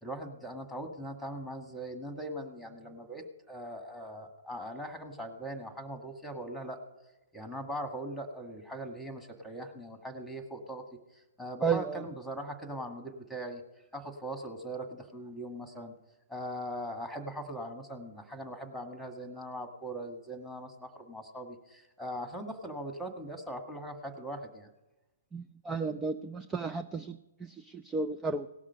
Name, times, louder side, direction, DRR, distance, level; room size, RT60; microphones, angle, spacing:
voice 1, 0.0-6.8 7.3-10.8 11.1-13.6 13.9-15.9 16.3-24.7, right 1 dB, ahead, 6 dB, 1.7 m, -40 dB
voice 2, 11.6-12.0 25.3-28.5, right 4 dB, 15° right, 8 dB, 0.5 m, -33 dB
18.0 x 6.1 x 5.6 m, 1.0 s
figure-of-eight pair, 120°, 0 cm